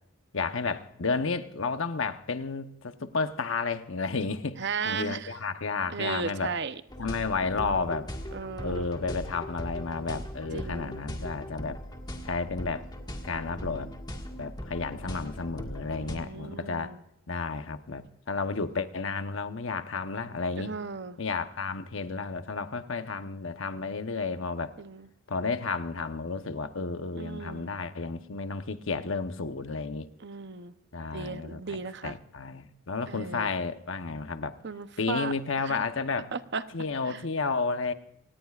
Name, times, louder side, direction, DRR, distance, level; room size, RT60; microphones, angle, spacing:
voice 1, 0.3-6.5 7.0-8.1 8.6-11.8 12.2-12.9 13.2-13.9 14.4-16.9 17.3-20.7 21.2-24.8 25.3-30.1 30.9-34.6 35.0-36.3 36.7-37.9, left 4 dB, 65° left, 1.0 m, -32 dB
voice 2, 4.6-5.3 5.9-6.8 8.3-8.9 10.5-10.9 16.0-17.0 20.6-21.2 24.8-25.1 27.1-27.7 30.2-30.7 31.1-32.1 33.1-33.5 34.6-35.3 35.6-35.8 36.3-36.6 37.1-37.2, right 5 dB, 55° right, 0.8 m, -35 dB
sound 1, 6.9-16.2, equal, 20° left, 1.7 m, -39 dB
28.0 x 18.0 x 2.5 m
head